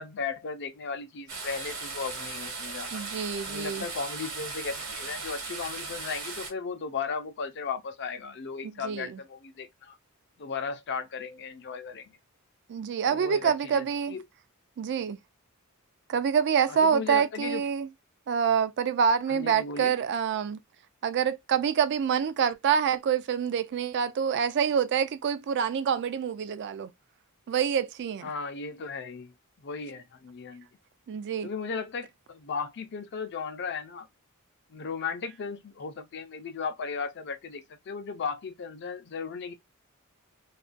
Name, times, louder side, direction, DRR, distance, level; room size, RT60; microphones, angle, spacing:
voice 1, 0.0-3.0 3.5-9.9 10.4-12.2 13.0-14.2 16.7-17.6 19.3-19.9 28.2-29.3 29.6-30.7 31.4-34.1 34.7-39.5, left 5 dB, 50° left, 0.5 m, -36 dB
sound 1, 1.3-6.5, right 4 dB, 65° right, 1.1 m, -37 dB
voice 2, 2.9-3.9 8.6-9.2 12.7-14.2 14.8-15.2 16.1-17.9 18.3-20.6 21.0-26.9 27.5-28.3 31.1-31.5, right 7 dB, 50° right, 0.3 m, -26 dB
2.4 x 2.2 x 2.4 m
head